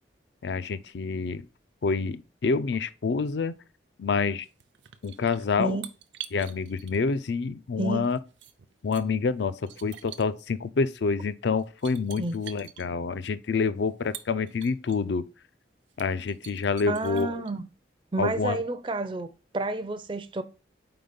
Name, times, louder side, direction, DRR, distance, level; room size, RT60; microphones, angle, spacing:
voice 1, 0.4-1.4 1.8-3.6 4.0-4.5 5.0-5.8 6.3-8.2 8.8-15.3 16.0-17.4 18.2-18.6, left 4 dB, 70° left, 0.4 m, -27 dB
sound 1, 4.4-7.2 7.8-9.0 9.6-10.4 11.2-11.3 11.6-12.9 13.9-15.0 15.5-15.6 15.9-17.5, right 11 dB, 80° right, 0.6 m, -45 dB
voice 2, 7.8-8.1 12.2-12.4 16.9-17.7 18.1-19.3 19.5-20.4, right 2 dB, 25° right, 0.4 m, -30 dB
4.7 x 3.9 x 5.1 m
head